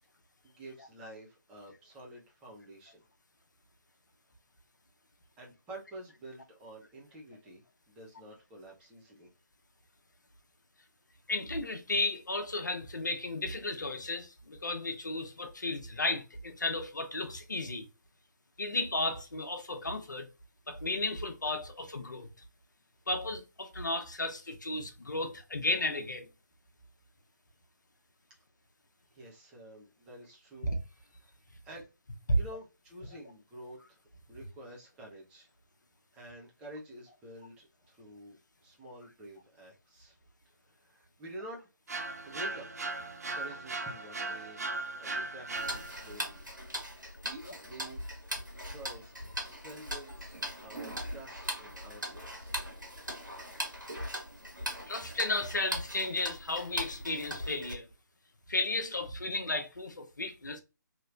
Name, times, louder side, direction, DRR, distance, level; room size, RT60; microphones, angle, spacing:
voice 1, 0.4-3.0 5.4-9.3 29.1-31.9 32.3-34.0 34.3-35.5 36.1-40.1 40.6-41.7 42.2-42.7 43.3-44.7 45.0-46.5 46.9-48.1 48.6-52.6, right 1 dB, 10° right, 0.7 m, -49 dB
voice 2, 11.3-17.9 18.6-20.3 20.7-22.3 23.1-26.3 30.6-30.8 32.3-32.4 54.9-57.9 58.5-60.6, left 2 dB, 70° left, 0.8 m, -33 dB
sound 1, 41.9-46.2, right 3 dB, 55° right, 0.6 m, -38 dB
Tick-tock, 45.5-57.7, equal, 85° right, 1.5 m, -40 dB
3.1 x 2.8 x 2.4 m
figure-of-eight pair, 145°, 10 cm